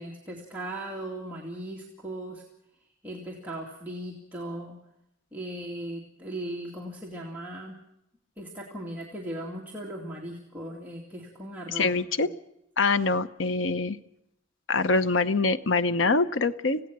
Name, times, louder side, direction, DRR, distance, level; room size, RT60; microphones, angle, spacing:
voice 1, 0.0-2.4 3.0-4.8 5.3-7.8 8.4-12.0, right 1 dB, 10° right, -4 dB, 2.5 m, -38 dB
voice 2, 11.7-12.3 12.8-14.0 14.7-16.8, left 3 dB, 80° left, 13 dB, 0.9 m, -24 dB
26.5 x 17.0 x 6.1 m, 0.80 s
head